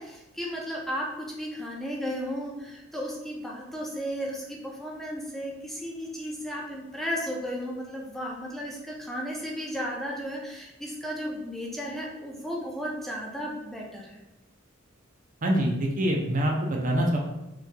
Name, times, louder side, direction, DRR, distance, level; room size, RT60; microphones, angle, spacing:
voice 1, 0.0-14.2, equal, ahead, -3 dB, 0.6 m, -34 dB
voice 2, 15.4-17.2, right 1 dB, 40° right, 0 dB, 0.6 m, -25 dB
6.0 x 3.0 x 2.3 m, 0.97 s
head